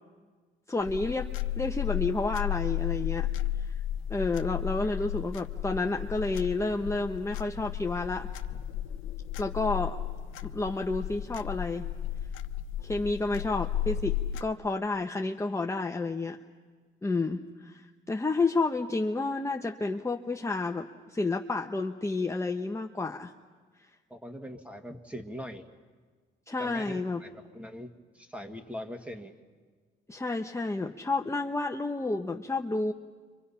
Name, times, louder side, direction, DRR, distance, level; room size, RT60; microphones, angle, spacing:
voice 1, 0.7-1.3 1.6-3.3 3.7-3.8 4.1-8.3 9.4-10.0 10.4-11.9 12.8-16.4 17.0-17.8 18.1-23.3 26.5-27.2 30.1-32.9, left 3 dB, 15° left, 2 dB, 0.9 m, -30 dB
sound 1, 0.8-14.4, left 11 dB, 85° left, 0.9 m, -34 dB
voice 2, 24.1-25.6 26.6-27.9 28.1-29.3, equal, 5° right, 5 dB, 2.0 m, -41 dB
29.5 x 25.0 x 5.7 m, 1.5 s
cardioid pair, 90°, 20 cm